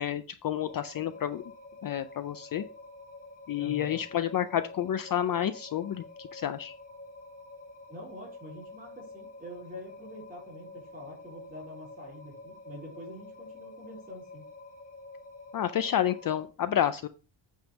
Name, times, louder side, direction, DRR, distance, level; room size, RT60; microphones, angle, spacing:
voice 1, 0.0-1.4 1.8-2.6 3.5-6.7 15.5-17.1, left 10 dB, 45° left, 11 dB, 0.5 m, -30 dB
sound 1, 0.6-16.4, left 3 dB, 15° left, 1.6 m, -48 dB
voice 2, 3.6-4.0 7.9-14.4, equal, 20° right, -2 dB, 4.5 m, -45 dB
8.8 x 3.7 x 6.2 m, 0.35 s
wide cardioid pair, 170°, 48 cm